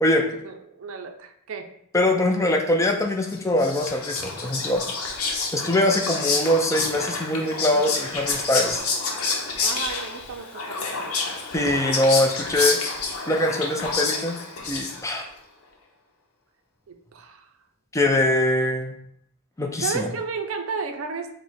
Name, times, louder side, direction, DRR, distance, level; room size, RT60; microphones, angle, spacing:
voice 1, 0.4-1.7 9.6-11.1 16.9-17.5 19.8-21.3, right 5 dB, 65° right, 5 dB, 0.5 m, -33 dB
voice 2, 1.9-4.8 5.5-8.9 11.5-12.8 13.3-14.4 14.7-15.3 17.9-19.0 19.6-20.1, left 1 dB, 15° left, 2 dB, 0.4 m, -22 dB
Whispering, 3.3-15.3, left 4 dB, 80° left, 0.8 m, -28 dB
4.8 x 2.1 x 4.1 m, 0.72 s
head